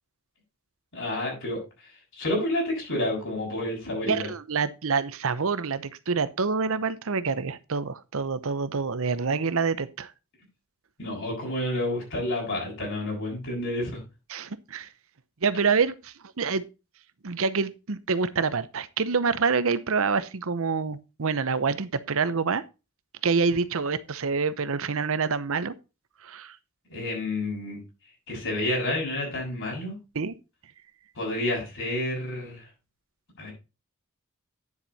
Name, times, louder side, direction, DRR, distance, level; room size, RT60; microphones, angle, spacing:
voice 1, 0.9-4.3 11.0-14.0 26.9-27.8 28.3-30.0 31.2-32.6 33.4-33.5, left 1 dB, 60° left, 7.0 m, -30 dB
voice 2, 4.1-10.1 14.3-14.9 15.4-16.6 17.2-22.6 23.2-25.7 26.2-26.6 30.1-30.3, right 5 dB, 65° right, 0.8 m, -27 dB
9.8 x 7.3 x 4.1 m
head